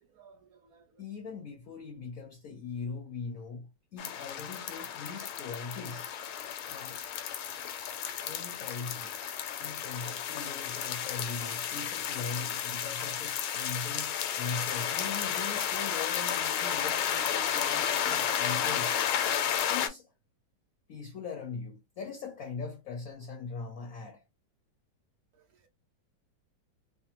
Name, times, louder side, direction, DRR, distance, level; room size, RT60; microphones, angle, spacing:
voice 1, 0.0-1.0 25.3-25.7, right 6 dB, 90° right, 0.8 m, -60 dB
voice 2, 1.0-6.1 6.6-7.0 8.2-9.3 9.6-18.9 19.7-20.1 20.9-24.2, left 4 dB, 65° left, 0.8 m, -41 dB
sound 1, 4.0-19.9, left 9 dB, 85° left, 1.4 m, -32 dB
3.3 x 2.1 x 2.9 m
omnidirectional pair, 2.3 m